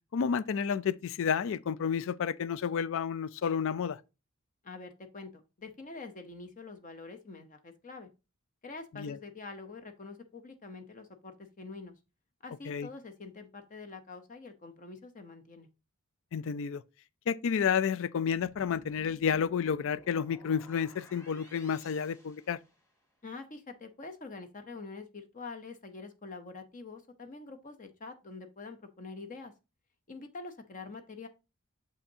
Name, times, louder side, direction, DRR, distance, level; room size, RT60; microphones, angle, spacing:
voice 1, 0.1-4.0 9.0-9.2 12.7-12.9 16.3-16.8 17.3-22.6, left 7 dB, 60° left, 0.4 m, -30 dB
voice 2, 4.6-8.1 8.6-11.9 12.4-15.7 23.2-29.5 30.1-31.3, left 3 dB, 35° left, 0.7 m, -45 dB
sound 1, 18.4-23.1, equal, 15° left, 2.4 m, -56 dB
6.9 x 5.6 x 2.7 m
head